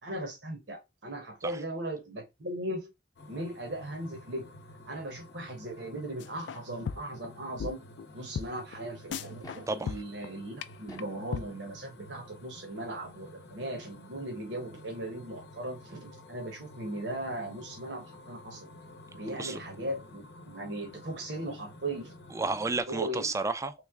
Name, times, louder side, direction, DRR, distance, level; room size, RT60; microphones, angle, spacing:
voice 1, 0.0-2.9 3.3-4.5 4.9-7.8 8.1-18.7 19.1-22.2 22.9-23.3, right 1 dB, 80° right, 1.0 m, -38 dB
sound 1, 3.2-22.8, left 1 dB, 70° left, 0.8 m, -51 dB
sound 2, 6.2-6.6 6.9-7.3 7.6-7.7 8.0-8.1 8.4-8.5 8.7-8.8 9.1-9.6 9.9-10.3 10.6-10.7 11.0-11.1 11.3-11.4, left 6 dB, 85° left, 0.3 m, -35 dB
sound 3, 9.4-9.8 10.7-11.2 12.6-12.7 14.4-14.5 14.7-14.8, left 1 dB, 20° left, 0.7 m, -49 dB
voice 2, 19.3-19.6 22.3-23.7, right 3 dB, 15° right, 0.4 m, -32 dB
3.4 x 3.1 x 3.5 m
head